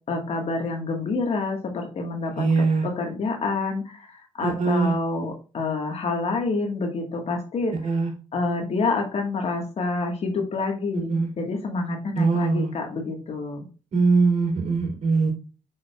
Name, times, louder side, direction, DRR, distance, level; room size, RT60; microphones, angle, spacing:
voice 1, 0.1-7.7 8.3-13.7, left 3 dB, 55° left, 3 dB, 1.6 m, -28 dB
voice 2, 2.4-2.8 4.4-4.9 7.8-8.1 11.1-11.3 12.1-12.7 13.9-15.3, right 4 dB, 60° right, 1 dB, 3.0 m, -21 dB
6.4 x 6.2 x 2.4 m, 0.33 s
cardioid pair, 95°, 13 cm